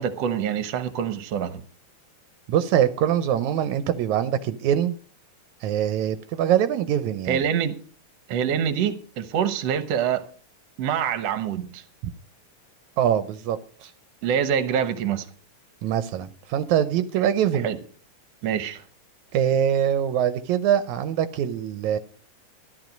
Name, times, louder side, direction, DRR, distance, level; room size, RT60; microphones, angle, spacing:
voice 1, 0.0-1.6 7.3-7.7 8.3-10.2 10.8-11.8 14.2-15.3 17.6-17.8 18.4-18.8, right 8 dB, 65° right, 2.1 m, -25 dB
voice 2, 2.5-5.0 5.6-7.4 13.0-13.9 15.8-17.7 19.3-22.0, right 10 dB, 80° right, 2.1 m, -23 dB
14.0 x 11.5 x 5.2 m
omnidirectional pair, 3.3 m